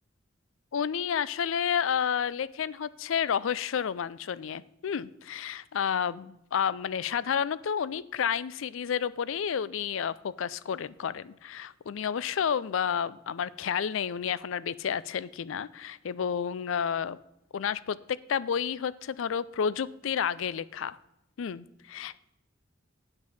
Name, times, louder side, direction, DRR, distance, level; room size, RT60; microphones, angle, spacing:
voice 1, 0.7-17.2 17.5-18.0 18.3-21.0 21.4-22.2, left 7 dB, 70° left, 19 dB, 0.4 m, -30 dB
8.8 x 7.5 x 5.7 m, 0.85 s
head